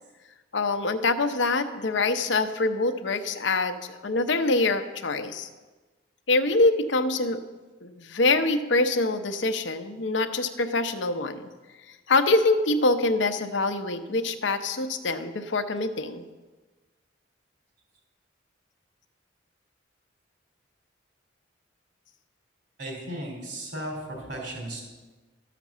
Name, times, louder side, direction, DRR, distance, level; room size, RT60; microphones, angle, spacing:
voice 1, 0.5-5.5 6.3-7.4 7.8-11.5 12.1-16.2, left 2 dB, 75° left, 8 dB, 0.8 m, -25 dB
voice 2, 22.8-24.8, right 1 dB, 60° right, 0 dB, 3.7 m, -35 dB
12.5 x 5.9 x 7.3 m, 1.3 s
head